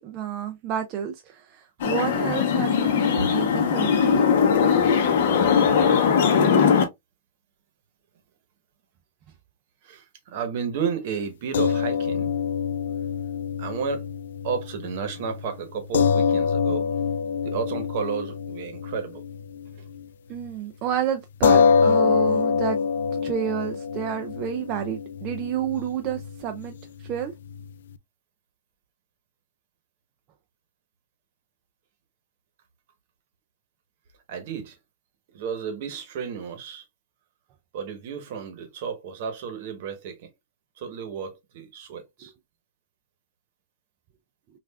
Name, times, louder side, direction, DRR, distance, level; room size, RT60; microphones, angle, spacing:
voice 1, 0.0-4.3 4.7-4.9 20.3-22.8 23.1-26.7 27.0-27.3 42.2-42.3, right 9 dB, 25° right, 0.4 m, -30 dB
sound 1, 1.8-6.8, left 6 dB, 50° left, 0.9 m, -20 dB
voice 2, 9.8-12.3 13.6-14.1 14.4-16.9 17.4-19.2 34.3-34.8 35.3-36.8 37.7-40.3 40.8-42.3, right 6 dB, 40° right, 1.0 m, -32 dB
sound 2, 11.5-20.1 20.4-20.5 21.4-28.0, left 6 dB, 80° left, 0.3 m, -25 dB
5.4 x 2.4 x 2.3 m
supercardioid pair, 170°, 0 cm